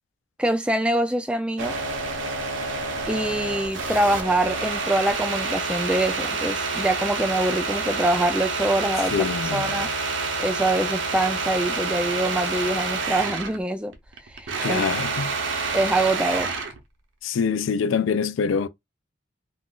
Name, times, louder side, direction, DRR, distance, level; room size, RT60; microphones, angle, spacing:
voice 1, 0.4-1.7 3.1-9.9 10.4-13.9 14.3-14.8 15.7-16.5, right 1 dB, 5° right, 0.3 m, -24 dB
sound 1, 1.6-13.6 13.9-16.8, right 4 dB, 70° right, 0.7 m, -28 dB
voice 2, 9.1-9.8 14.6-15.3 17.2-18.7, left 6 dB, 75° left, 0.4 m, -25 dB
2.4 x 2.4 x 3.6 m
head